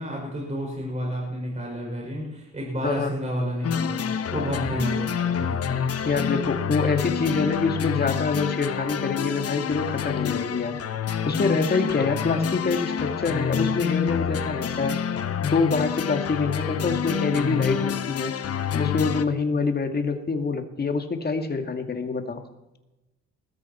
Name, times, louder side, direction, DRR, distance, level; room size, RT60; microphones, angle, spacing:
voice 1, 0.0-4.0 4.3-5.8, equal, 25° right, -2 dB, 5.6 m, -30 dB
sound 1, 3.6-19.2, left 8 dB, 50° left, 1.0 m, -28 dB
voice 2, 6.0-10.8 11.0-15.0 15.4-18.3 18.7-22.4, left 4 dB, 30° left, 6 dB, 2.2 m, -26 dB
20.5 x 13.5 x 4.4 m, 0.99 s
cardioid pair, 90°, 30 cm